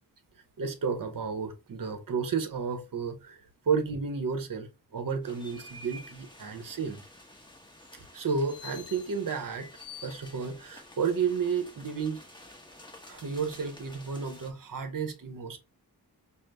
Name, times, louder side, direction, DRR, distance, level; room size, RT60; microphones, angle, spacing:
voice 1, 0.6-3.4 3.7-4.7 4.9-7.0 8.1-9.7 10.0-12.2 13.0-15.6, right 5 dB, 55° right, 0.7 m, -32 dB
sound 1, 5.2-14.5, left 3 dB, 10° left, 0.9 m, -49 dB
5.2 x 2.1 x 3.3 m
wide cardioid pair, 110°, 40 cm